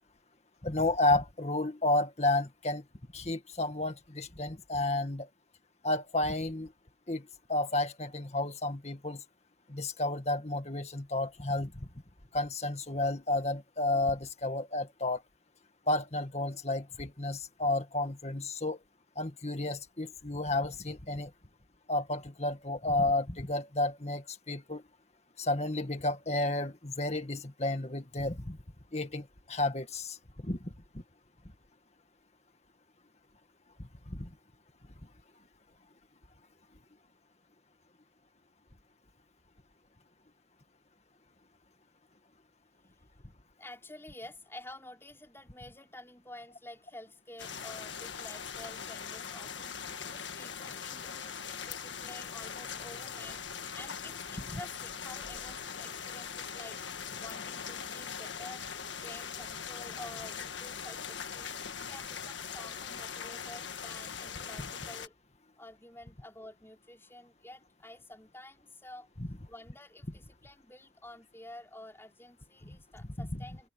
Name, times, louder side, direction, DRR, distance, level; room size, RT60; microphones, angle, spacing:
voice 1, 0.6-2.8 3.1-5.3 5.8-6.7 7.1-9.2 9.7-11.9 12.3-15.2 15.9-18.8 19.2-21.3 21.9-24.8 25.4-28.6 28.9-30.2 30.4-30.7 34.1-34.3 54.5-54.6 73.2-73.4, left 2 dB, 35° left, 2.0 m, -31 dB
voice 2, 43.6-49.8 50.1-58.6 59.0-61.5 61.9-65.1 65.6-69.1 69.5-73.7, left 1 dB, 15° left, 5.0 m, -50 dB
sound 1, 47.4-65.1, left 7 dB, 85° left, 1.7 m, -41 dB
head